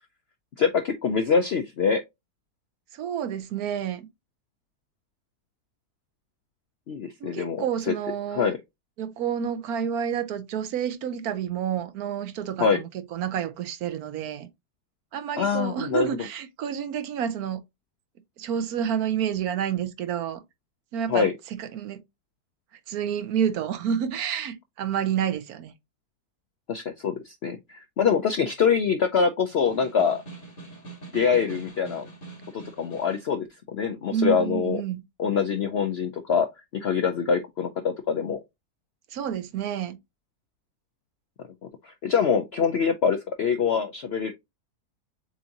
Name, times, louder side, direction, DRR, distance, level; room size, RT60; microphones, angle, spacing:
voice 1, 0.6-2.0 6.9-7.9 8.3-8.6 12.6-12.8 15.4-16.3 21.1-21.3 26.7-30.2 31.1-32.1 32.5-34.8 35.2-36.5 36.7-38.4 41.8-44.3, left 6 dB, 70° left, 0.6 m, -24 dB
voice 2, 2.9-4.1 7.2-8.5 9.0-14.5 15.1-17.6 18.4-20.4 20.9-21.3 21.6-22.0 22.9-25.7 34.1-35.0 39.1-40.0, right 8 dB, 70° right, 1.1 m, -29 dB
Snare drum, 29.5-33.3, right 3 dB, 35° left, 1.8 m, -44 dB
7.0 x 2.6 x 2.9 m
omnidirectional pair, 1.7 m